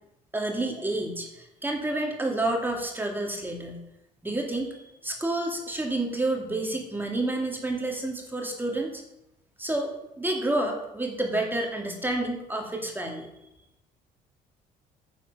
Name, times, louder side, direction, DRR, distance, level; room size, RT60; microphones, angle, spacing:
voice 1, 0.3-3.8 4.2-9.0 9.6-13.3, right 2 dB, 10° right, 1 dB, 2.2 m, -29 dB
10.0 x 8.7 x 6.4 m, 0.88 s
cardioid pair, 110°, 17 cm